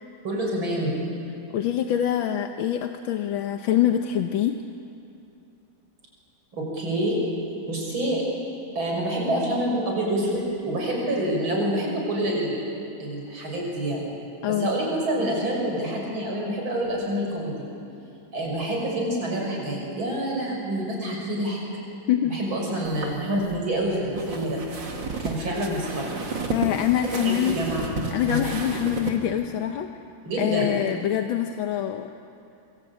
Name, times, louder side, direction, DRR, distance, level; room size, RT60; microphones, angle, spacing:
voice 1, 0.2-0.9 6.5-7.2 7.7-8.2 8.8-12.7 13.0-14.1 14.5-17.7 18.3-21.6 22.3-24.6 25.2-26.1 27.2-27.9 28.2-28.5 30.2-30.8, right 1 dB, 85° right, -1 dB, 7.0 m, -27 dB
voice 2, 1.5-4.6 14.4-14.7 22.1-22.4 26.5-27.6 28.1-29.9 30.4-32.1, left 11 dB, 80° left, 6 dB, 1.7 m, -24 dB
sound 1, 22.8-29.2, right 3 dB, 65° right, 3.0 m, -33 dB
26.5 x 24.0 x 8.8 m, 2.7 s
omnidirectional pair, 2.2 m